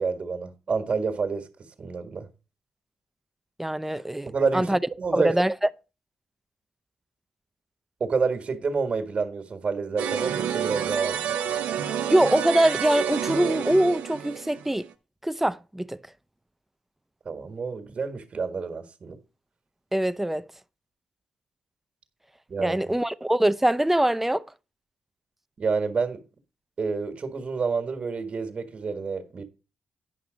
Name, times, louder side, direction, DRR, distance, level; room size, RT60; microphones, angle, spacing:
voice 1, 0.0-2.3 4.3-5.4 8.0-11.5 17.2-19.2 22.5-22.9 25.6-26.2 26.8-29.4, right 5 dB, 50° right, 1.6 m, -29 dB
voice 2, 3.6-4.8 5.1-5.5 12.1-14.9 15.2-16.0 19.9-20.5 22.6-24.4, right 1 dB, 10° right, 0.6 m, -23 dB
sound 1, 10.0-14.9, right 8 dB, 80° right, 0.8 m, -29 dB
9.8 x 5.8 x 5.0 m
supercardioid pair, 50°, 3 cm